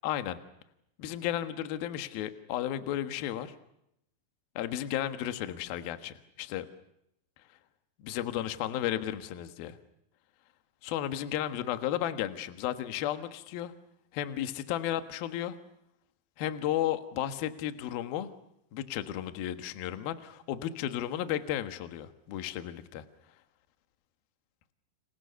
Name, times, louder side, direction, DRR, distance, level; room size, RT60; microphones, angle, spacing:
voice 1, 0.0-0.4 1.0-3.5 4.6-6.7 8.0-9.8 10.8-13.7 14.1-15.6 16.4-18.3 18.7-23.0, left 12 dB, 65° left, 9 dB, 2.6 m, -33 dB
29.5 x 27.0 x 7.0 m, 0.81 s
omnidirectional pair, 6.0 m